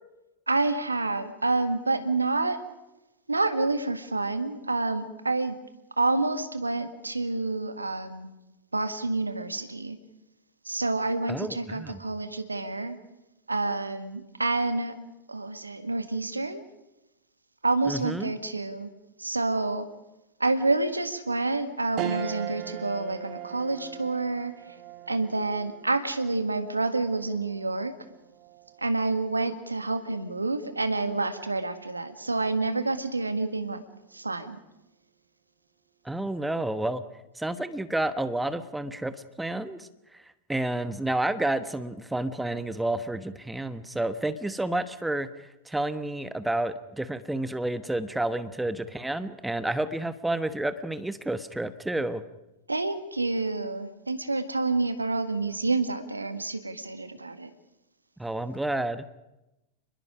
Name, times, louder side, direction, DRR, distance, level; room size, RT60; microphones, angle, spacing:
voice 1, 0.5-2.6 3.3-5.6 6.0-8.3 8.7-10.0 10.6-13.0 13.5-15.0 15.3-16.6 17.6-18.9 19.2-19.9 20.4-24.5 25.1-27.9 28.8-33.8 34.1-34.6 52.7-57.5, right 3 dB, 80° right, 10 dB, 1.7 m, -28 dB
voice 2, 11.3-12.0 17.9-18.3 36.0-37.0 37.4-39.9 40.1-40.2 40.5-45.3 45.7-52.2 58.2-59.0, right 1 dB, 5° right, 12 dB, 1.1 m, -30 dB
sound 1, 22.0-31.6 32.0-32.1 33.5-33.9, right 14 dB, 40° right, 1.1 m, -41 dB
29.5 x 21.0 x 5.0 m, 0.98 s
figure-of-eight pair, 90°, 0 cm